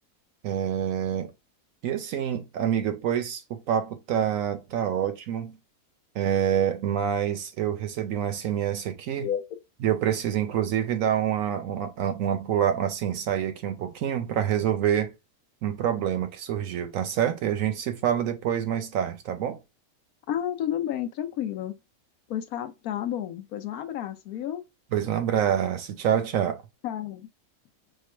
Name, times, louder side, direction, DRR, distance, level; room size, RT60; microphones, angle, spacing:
voice 1, 0.4-1.3 1.8-5.6 6.1-9.3 9.8-15.1 15.6-19.6 24.9-26.6, right 9 dB, 70° right, 0.9 m, -27 dB
voice 2, 20.3-21.8 22.3-24.6 26.8-27.3, left 10 dB, 75° left, 1.1 m, -31 dB
4.5 x 2.4 x 4.3 m
omnidirectional pair, 1.6 m